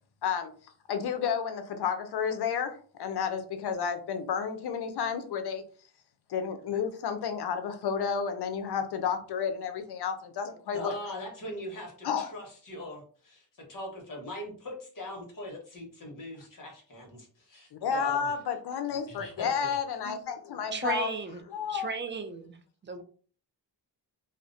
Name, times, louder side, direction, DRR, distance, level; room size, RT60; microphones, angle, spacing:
voice 1, 0.9-5.6 6.3-10.9 12.0-12.3 17.7-21.1 21.5-21.9, left 7 dB, 65° left, 8 dB, 0.6 m, -31 dB
voice 2, 10.7-18.3 19.1-19.8, left 1 dB, 50° left, 0 dB, 1.1 m, -41 dB
voice 3, 20.7-21.4 21.7-22.6 22.8-23.0, right 5 dB, 30° right, 7 dB, 0.3 m, -35 dB
2.5 x 2.0 x 2.5 m, 0.42 s
cardioid pair, 70°, 43 cm